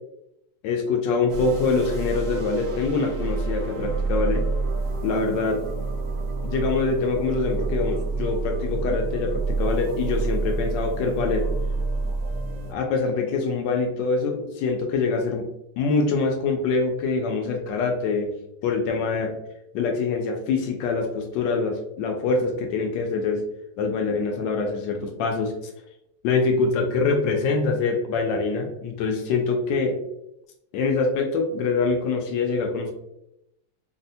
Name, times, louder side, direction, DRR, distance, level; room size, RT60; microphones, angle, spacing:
voice 1, 0.6-4.5 5.0-5.6 6.4-11.5 12.7-15.4 15.8-18.3 18.6-19.3 19.7-23.4 23.8-25.6 26.2-30.0 30.7-32.9, left 4 dB, 80° left, 2 dB, 1.2 m, -24 dB
sound 1, 1.3-12.7, right 3 dB, 70° right, 0.9 m, -28 dB
4.3 x 2.0 x 2.7 m, 0.81 s
omnidirectional pair, 2.0 m